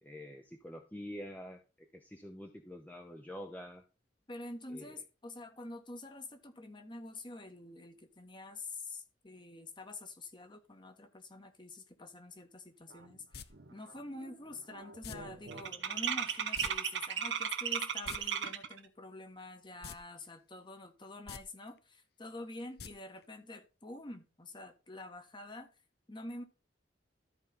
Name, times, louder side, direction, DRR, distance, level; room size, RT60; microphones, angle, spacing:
voice 1, 0.0-3.8 4.7-5.0, equal, 10° left, 3 dB, 0.9 m, -47 dB
voice 2, 4.3-25.7 26.1-26.4, left 2 dB, 25° left, 7 dB, 1.4 m, -47 dB
sound 1, 13.1-13.2 13.5-13.9 14.2-18.8, right 7 dB, 80° right, 1.3 m, -36 dB
sound 2, 13.3-13.5 15.0-15.2 16.5-16.7 17.0-17.1 17.9-18.2 19.8-20.0 20.3-20.4 21.2-21.4 22.8-22.9 23.2-23.3, left 6 dB, 60° left, 0.7 m, -45 dB
13.5 x 4.9 x 4.0 m, 0.30 s
head